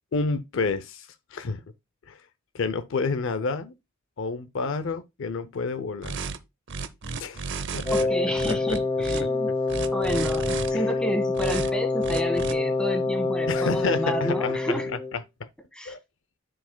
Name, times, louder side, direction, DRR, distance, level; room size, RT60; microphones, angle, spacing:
voice 1, 0.1-1.6 2.1-2.2 2.5-3.7 4.2-6.2 7.2-7.9 8.5-8.8 9.2-9.3 10.7-10.8 13.5-14.8 15.1-15.2 15.9-16.0, left 4 dB, 65° left, 0.6 m, -29 dB
sound 1, 6.0-6.4 6.7-8.0 8.3-9.2 9.7-10.7 11.3-11.7 12.0-12.5, right 4 dB, 55° right, 0.7 m, -33 dB
Wind instrument woodwind instrument, 7.8-15.1, left 3 dB, 20° left, 0.8 m, -26 dB
voice 2, 7.9-9.5 9.9-14.9 15.7-15.9, equal, 5° left, 1.4 m, -31 dB
13.0 x 4.9 x 2.2 m
head